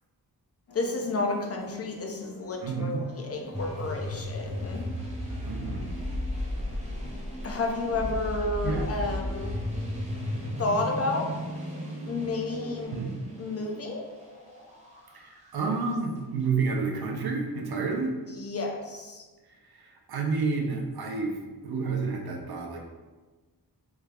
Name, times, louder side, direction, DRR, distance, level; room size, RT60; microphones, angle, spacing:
sound 1, 0.7-12.9, equal, 70° left, 0.9 m, -45 dB
voice 1, 0.7-4.9 7.4-9.6 10.6-11.3 12.1-12.9 13.4-14.1 18.3-19.2, left 2 dB, 40° left, 2 dB, 0.5 m, -31 dB
voice 2, 2.6-3.0 5.4-5.9 8.6-8.9 12.9-13.2 15.1-18.2 19.5-22.8, right 4 dB, 75° right, 1 dB, 0.7 m, -30 dB
sound 2, 3.5-16.0, left 1 dB, 20° right, 0.8 m, -35 dB
3.3 x 2.3 x 3.4 m, 1.3 s
wide cardioid pair, 100°, 38 cm